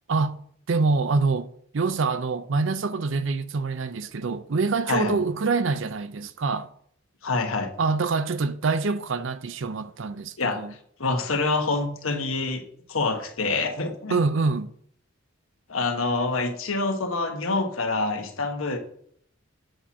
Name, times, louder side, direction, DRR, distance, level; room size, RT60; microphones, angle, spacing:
voice 1, 0.7-1.5 1.7-6.7 7.8-10.7 14.1-14.7, right 4 dB, 65° right, 0.5 m, -25 dB
voice 2, 7.2-7.7 10.4-10.6 11.0-12.6 12.9-14.2 15.7-18.8, left 3 dB, 85° left, 1.3 m, -26 dB
7.8 x 4.3 x 6.0 m
head